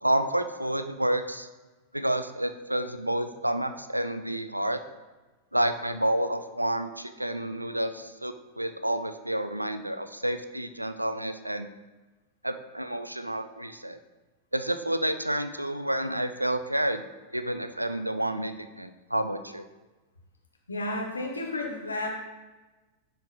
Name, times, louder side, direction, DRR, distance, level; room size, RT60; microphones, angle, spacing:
voice 1, 0.0-1.5 1.9-4.8 5.5-11.7 12.4-14.0 14.5-17.0 17.3-19.6, right 1 dB, 85° right, 10 dB, 0.3 m, -29 dB
voice 2, 20.7-22.1, left 2 dB, 75° left, 1 dB, 1.0 m, -32 dB
10.5 x 4.5 x 2.3 m, 1.2 s
figure-of-eight pair, 90°, 0 cm